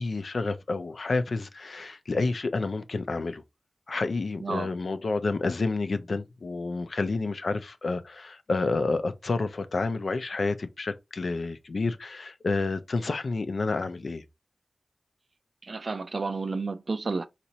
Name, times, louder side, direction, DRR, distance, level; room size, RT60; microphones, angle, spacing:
voice 1, 0.0-3.4 3.9-14.2, left 3 dB, 75° left, 0.5 m, -29 dB
voice 2, 4.4-4.7 15.6-17.3, right 3 dB, 60° right, 0.4 m, -31 dB
4.2 x 2.5 x 2.8 m
wide cardioid pair, 70°, 0 cm